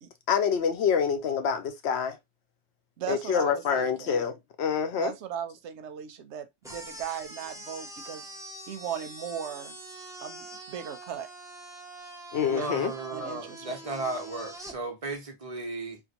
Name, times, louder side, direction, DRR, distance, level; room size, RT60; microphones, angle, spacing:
voice 1, 0.3-2.2 3.1-5.1 12.3-12.9, left 7 dB, 75° left, 0.8 m, -26 dB
voice 2, 3.0-4.2 4.9-8.3 8.7-9.8 10.2-11.3 13.1-13.8, right 9 dB, 90° right, 0.9 m, -37 dB
sound 1, 6.6-14.8, right 1 dB, 5° right, 0.4 m, -44 dB
voice 3, 12.5-16.0, right 3 dB, 35° right, 0.8 m, -35 dB
3.7 x 2.2 x 2.8 m
omnidirectional pair, 1.1 m